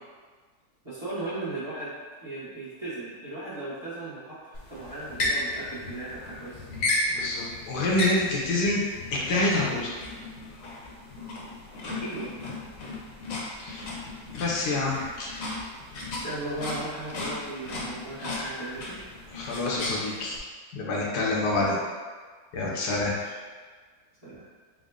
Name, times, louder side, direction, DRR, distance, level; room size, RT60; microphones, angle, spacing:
voice 1, 0.8-6.7 11.8-12.5 16.2-19.1 21.5-21.8 23.0-23.4 24.2-24.5, right 2 dB, 25° right, -12 dB, 1.1 m, -37 dB
sound 1, 4.5-20.4, left 2 dB, 65° left, 1.1 m, -35 dB
voice 2, 7.1-8.8 9.1-9.9 13.6-13.9 14.3-15.3 19.3-20.4 20.7-21.8 22.5-23.1, left 2 dB, 85° left, -3 dB, 1.3 m, -27 dB
3.7 x 2.0 x 3.6 m, 1.5 s
omnidirectional pair, 1.7 m